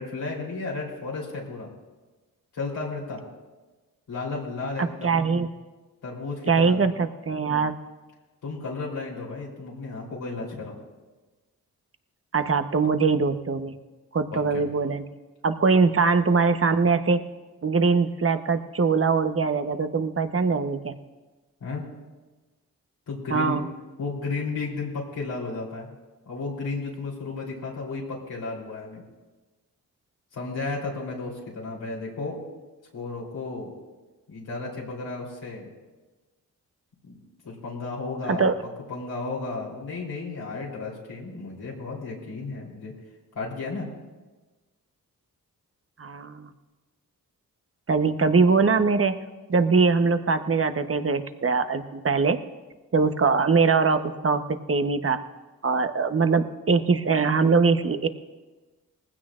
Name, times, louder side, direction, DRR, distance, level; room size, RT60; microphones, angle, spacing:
voice 1, 0.0-1.7 2.5-3.2 4.1-5.2 6.0-6.9 8.4-10.8 14.3-14.6 21.6-21.8 23.1-23.6 24.0-25.9 26.2-29.0 30.3-32.4 32.9-33.7 34.3-35.7 37.0-37.2 37.4-38.5 38.9-42.9 43.3-43.9, left 3 dB, 80° left, -4 dB, 3.6 m, -33 dB
voice 2, 4.8-5.5 6.5-7.8 12.3-13.7 14.1-15.0 15.4-17.2 17.6-20.9 23.3-23.7 38.4-38.5 46.0-46.5 47.9-49.1 49.5-52.4 52.9-55.2 55.6-58.1, right 4 dB, 35° right, 9 dB, 1.0 m, -22 dB
19.5 x 16.0 x 2.5 m, 1.2 s
cardioid pair, 50°, 36 cm